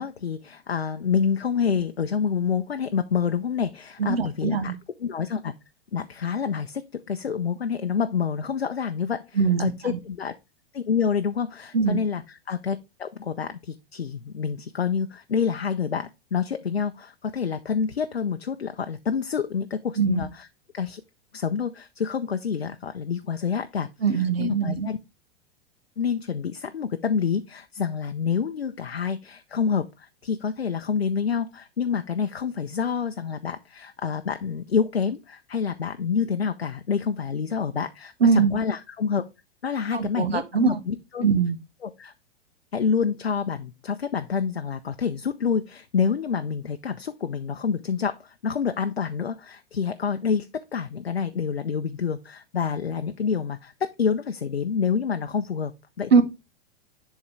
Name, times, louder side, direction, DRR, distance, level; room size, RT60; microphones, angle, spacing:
voice 1, 0.0-4.7 5.0-5.5 5.9-10.3 10.7-12.2 12.5-20.5 20.7-21.0 21.3-23.9 24.4-25.0 26.0-39.2 39.6-41.2 41.8-42.1 42.7-53.7 54.0-55.7 56.0-56.2, left 6 dB, 85° left, 0.5 m, -27 dB
voice 2, 4.0-4.7 9.3-10.0 11.7-12.0 20.0-20.3 24.0-24.9 38.2-38.6 39.9-40.8 41.2-41.6 56.1-56.2, right 5 dB, 75° right, 0.9 m, -22 dB
10.5 x 3.6 x 3.2 m
figure-of-eight pair, 95°, 30 cm